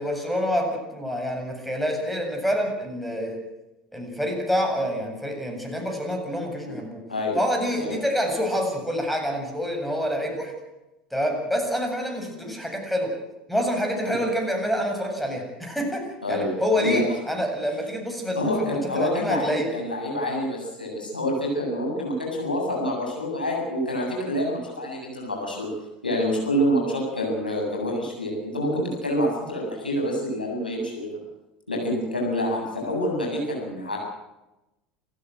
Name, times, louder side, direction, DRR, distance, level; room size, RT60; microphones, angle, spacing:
voice 1, 0.0-3.4 3.9-7.0 7.3-10.5 11.1-13.1 13.5-19.7, equal, ahead, 3 dB, 7.9 m, -27 dB
voice 2, 18.4-25.7 26.0-31.2 31.7-34.0, equal, 90° left, -1 dB, 7.9 m, -27 dB
28.5 x 15.0 x 7.9 m, 0.97 s
figure-of-eight pair, 75°, 5 cm